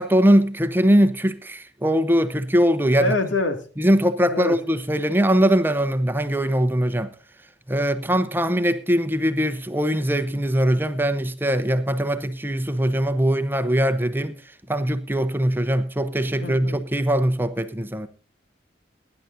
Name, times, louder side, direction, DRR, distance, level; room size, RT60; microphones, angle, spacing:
voice 1, 0.0-3.1 3.8-7.1 7.7-14.4 14.7-18.1, equal, 10° right, 0.7 m, -21 dB
voice 2, 3.0-3.6 4.3-4.6 16.4-16.8, left 2 dB, 90° left, 2.3 m, -25 dB
22.5 x 10.5 x 2.6 m
head